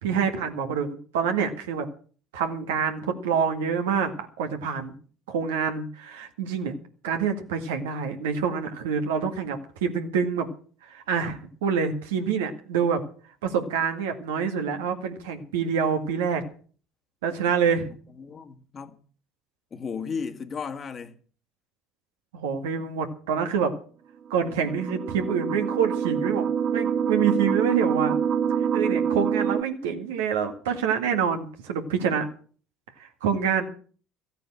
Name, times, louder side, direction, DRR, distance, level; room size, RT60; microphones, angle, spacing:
voice 1, 0.0-1.9 2.3-4.1 4.4-4.9 5.3-6.8 7.0-10.5 10.8-13.0 13.4-16.4 17.2-17.9 22.3-23.7 24.3-28.2 28.7-32.3 33.0-33.7, right 6 dB, 80° right, 1.9 m, -26 dB
voice 2, 17.9-19.0 19.7-21.2, left 5 dB, 40° left, 1.8 m, -35 dB
sound 1, 24.4-29.6, right 7 dB, 50° right, 0.8 m, -26 dB
14.5 x 9.1 x 7.6 m
hypercardioid pair, 70°, 0 cm